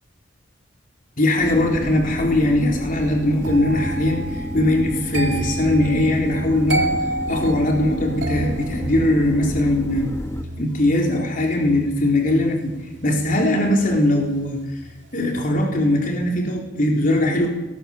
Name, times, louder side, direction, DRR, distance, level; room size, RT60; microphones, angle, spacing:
voice 1, 1.2-6.9 7.3-10.1 10.6-12.7 13.0-14.8 15.1-17.5, left 1 dB, 50° left, 1 dB, 3.9 m, -20 dB
sound 1, 1.4-10.4, left 1 dB, 15° left, 1.6 m, -31 dB
sound 2, 3.4-14.4 14.7-15.1, right 2 dB, 80° right, 2.6 m, -31 dB
23.0 x 19.5 x 7.3 m, 1.0 s
head